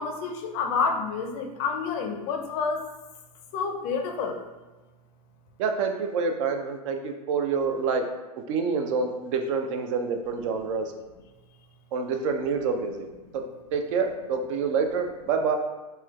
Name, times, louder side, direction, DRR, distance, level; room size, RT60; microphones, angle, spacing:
voice 1, 0.0-2.8 3.5-4.4, left 5 dB, 40° left, 3 dB, 0.5 m, -28 dB
voice 2, 5.6-8.1 8.5-10.9 11.9-13.1 13.3-13.4 13.7-15.6, right 5 dB, 50° right, 6 dB, 0.4 m, -27 dB
4.2 x 2.1 x 2.3 m, 1.2 s
hypercardioid pair, 110°, 21 cm